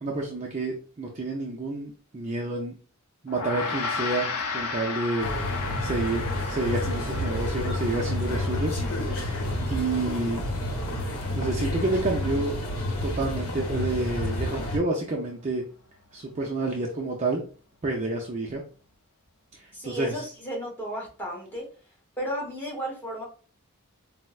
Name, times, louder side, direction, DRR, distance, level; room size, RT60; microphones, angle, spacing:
voice 1, 0.0-2.7 3.2-4.3 4.5-5.3 5.8-6.2 6.5-8.7 9.1-9.4 9.7-10.4 11.3-12.6 13.0-15.6 16.1-17.4 17.8-18.6 19.5-20.1, right 2 dB, 30° right, -1 dB, 0.4 m, -29 dB
Gong, 3.3-12.9, left 4 dB, 90° left, 0.5 m, -35 dB
sound 1, 5.2-14.8, left 1 dB, 70° left, 0.9 m, -29 dB
voice 2, 19.7-21.7 22.2-23.2, equal, 10° left, -4 dB, 1.0 m, -33 dB
4.2 x 2.0 x 2.3 m, 0.38 s
head